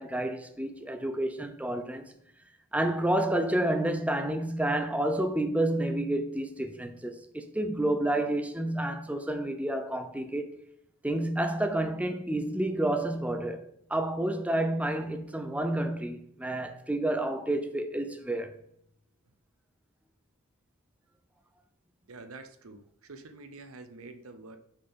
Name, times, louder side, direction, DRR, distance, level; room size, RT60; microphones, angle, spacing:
voice 1, 0.0-2.1 2.7-10.5 11.0-18.5, right 1 dB, 5° right, 0.5 m, -30 dB
voice 2, 22.1-24.6, right 3 dB, 80° right, 0.8 m, -47 dB
6.5 x 3.9 x 5.2 m
head